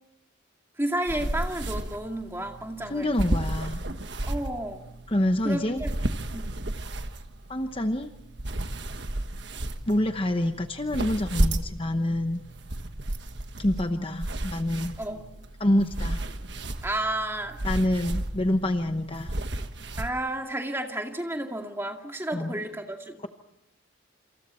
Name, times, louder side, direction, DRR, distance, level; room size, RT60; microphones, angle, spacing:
voice 1, 0.8-3.2 4.3-4.8 5.4-5.9 6.3-6.7 15.0-15.2 16.8-17.6 20.0-23.3, right 1 dB, 10° right, 3 dB, 2.2 m, -32 dB
sound 1, 1.1-20.1, right 1 dB, 55° right, 1.4 m, -33 dB
voice 2, 2.9-3.8 5.1-5.8 7.5-8.1 9.9-12.4 13.6-15.0 15.6-16.2 17.6-19.4 22.3-22.5, left 1 dB, 25° left, 7 dB, 0.9 m, -26 dB
28.0 x 27.5 x 4.4 m, 0.90 s
head